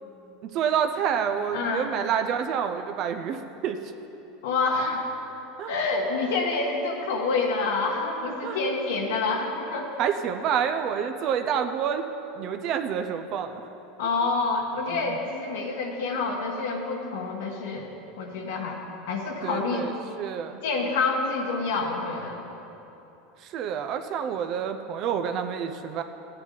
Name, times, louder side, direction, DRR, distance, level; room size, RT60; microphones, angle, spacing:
voice 1, 0.4-3.8 5.6-5.7 8.4-8.6 10.0-12.0 12.4-13.6 14.9-15.2 19.4-20.6 23.4-26.0, right 8 dB, 40° right, 7 dB, 0.6 m, -28 dB
voice 2, 1.5-1.9 4.4-5.1 5.7-9.9 14.0-17.9 18.2-18.8 19.1-19.9 20.6-22.4, left 3 dB, 85° left, -1 dB, 1.4 m, -27 dB
15.5 x 9.7 x 4.0 m, 3.0 s
supercardioid pair, 155°, 0 cm